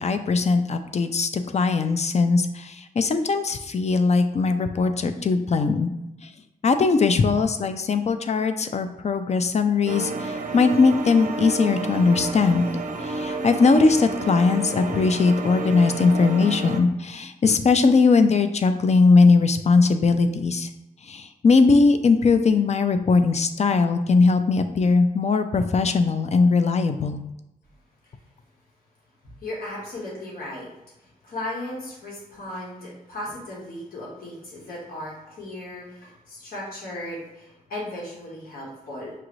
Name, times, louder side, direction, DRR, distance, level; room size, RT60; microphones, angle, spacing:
voice 1, 0.0-5.9 6.2-6.3 6.6-12.7 13.0-20.7 21.0-27.2, left 4 dB, 50° left, 9 dB, 0.4 m, -20 dB
sound 1, 9.9-16.8, right 2 dB, 60° right, 0.5 m, -30 dB
voice 2, 29.2-30.7 31.2-39.1, left 1 dB, 90° left, -5 dB, 1.2 m, -36 dB
5.7 x 2.5 x 3.1 m, 0.93 s
cardioid pair, 70°, 15 cm